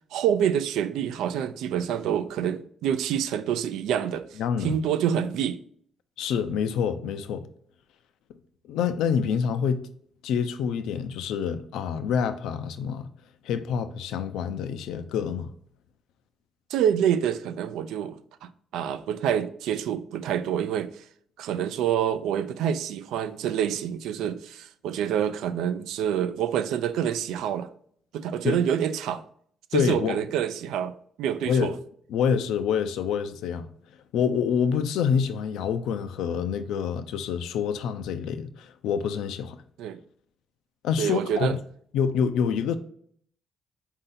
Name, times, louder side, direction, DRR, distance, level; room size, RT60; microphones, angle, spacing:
voice 1, 0.1-4.3 4.6-5.6 16.7-21.0 21.4-27.7 28.1-29.2 29.7-30.9 31.2-31.7 39.8-40.0 41.0-41.6, right 9 dB, 90° right, 0.3 m, -27 dB
voice 2, 4.4-4.7 6.2-7.4 8.7-9.8 10.2-13.1 13.4-15.5 28.4-28.6 29.7-30.2 31.5-31.8 32.1-33.7 34.1-39.6 40.8-41.6 41.9-42.7, left 7 dB, 85° left, 0.4 m, -27 dB
4.1 x 2.7 x 3.8 m
cardioid pair, 90°, 0 cm